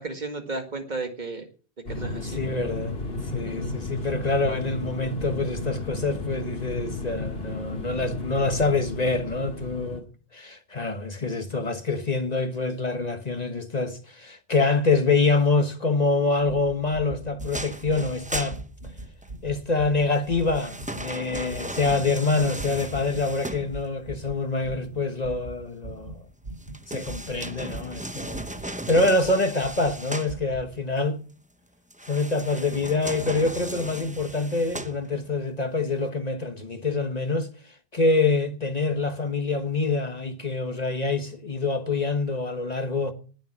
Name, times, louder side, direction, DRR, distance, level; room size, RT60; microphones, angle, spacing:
voice 1, 0.0-1.5 1.9-2.4 3.5-3.8, right 3 dB, 45° right, 1.9 m, -34 dB
sound 1, 1.9-10.0, left 2 dB, 70° left, 2.1 m, -33 dB
voice 2, 2.2-3.0 3.3-10.1 10.3-18.6 19.4-26.2 26.9-28.4 28.9-31.2 32.1-37.5 37.9-43.1, left 3 dB, 40° left, 1.3 m, -26 dB
sound 2, 16.4-29.3 29.6-30.0 30.2-30.6 30.9-31.0, right 2 dB, 75° right, 4.0 m, -41 dB
sound 3, 17.4-19.3 20.1-24.1 26.6-30.4 31.9-35.4 35.9-36.0, right 1 dB, 10° right, 0.6 m, -37 dB
19.0 x 7.0 x 5.9 m
omnidirectional pair, 1.1 m